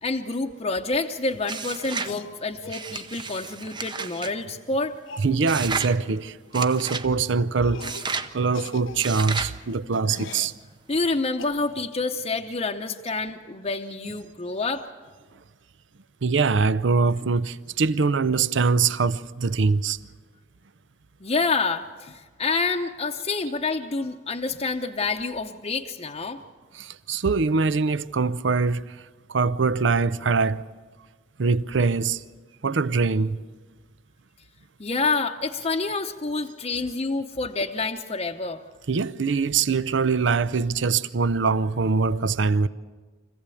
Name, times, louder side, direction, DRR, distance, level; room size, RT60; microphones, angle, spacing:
voice 1, 0.0-4.9 10.9-14.9 21.2-26.4 34.8-38.6, left 3 dB, 30° left, 0.8 m, -28 dB
sound 1, 1.4-2.2 2.7-4.3 5.5-5.9 6.5-7.1 7.8-8.3 9.0-9.6, right 4 dB, 25° right, 0.8 m, -32 dB
sound 2, 1.9-2.8 4.2-4.3 4.5-4.6 5.1-5.3 6.0-6.2 6.4-6.6 7.0-7.2 7.6-8.1 8.4-10.6 11.4-11.9, left 4 dB, 85° left, 0.7 m, -41 dB
voice 2, 5.2-7.9 8.3-10.5 16.2-20.0 26.7-29.0 29.3-30.6 31.4-32.2 32.6-33.4 38.9-42.7, right 4 dB, 70° right, 0.6 m, -23 dB
25.0 x 15.5 x 8.4 m
head